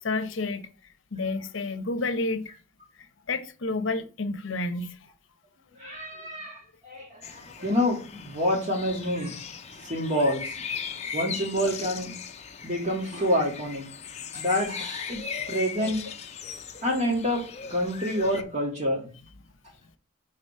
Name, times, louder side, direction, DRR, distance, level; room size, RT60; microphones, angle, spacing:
voice 1, 0.0-0.7 1.1-2.5 3.3-5.0 6.2-6.3 10.8-10.9, left 3 dB, 75° left, 0.8 m, -30 dB
voice 2, 5.8-9.4 9.9-10.4 11.1-12.1 12.6-13.9 14.3-15.2 15.5-16.0 16.8-17.4 17.7-19.1, equal, 35° right, 2.0 m, -27 dB
sound 1, 7.2-18.4, left 6 dB, 35° left, 0.6 m, -38 dB
4.9 x 4.1 x 5.5 m
head